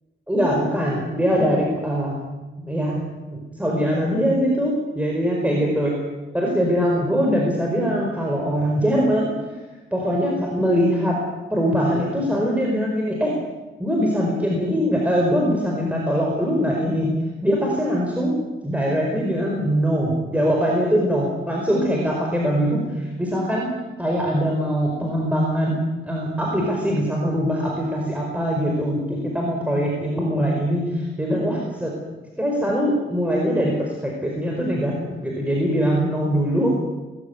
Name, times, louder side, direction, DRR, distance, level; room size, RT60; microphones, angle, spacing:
voice 1, 0.3-2.2 2.6-5.9 6.3-9.6 9.9-11.2 11.5-13.4 13.8-23.7 24.0-32.0 32.4-36.7, equal, 5° right, -1 dB, 4.8 m, -22 dB
20.5 x 15.5 x 9.4 m, 1.2 s
cardioid pair, 110°, 21 cm